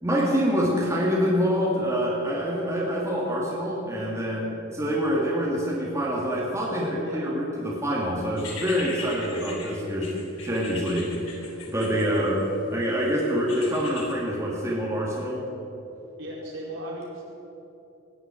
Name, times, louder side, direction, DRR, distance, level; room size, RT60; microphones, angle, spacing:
voice 1, 0.0-15.4, equal, 15° right, -5 dB, 2.5 m, -26 dB
sound 1, 8.4-12.6 13.5-14.1, left 4 dB, 90° left, 3.7 m, -39 dB
voice 2, 16.2-17.2, right 1 dB, 65° right, -5 dB, 4.6 m, -36 dB
18.5 x 7.9 x 9.2 m, 2.9 s
head